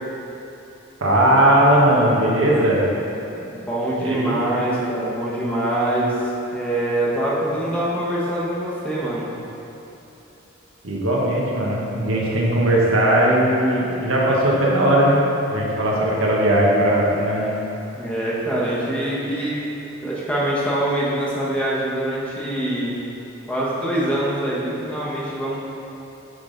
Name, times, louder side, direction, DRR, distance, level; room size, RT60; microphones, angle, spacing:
voice 1, 1.0-2.9 4.0-4.4 10.8-15.2 15.5-17.5, right 1 dB, 85° right, -4 dB, 1.2 m, -18 dB
voice 2, 3.4-6.2 6.5-9.3 17.9-19.6 20.0-22.9 23.5-25.5, right 1 dB, 5° left, -7 dB, 1.1 m, -24 dB
8.6 x 3.8 x 3.9 m, 2.9 s
head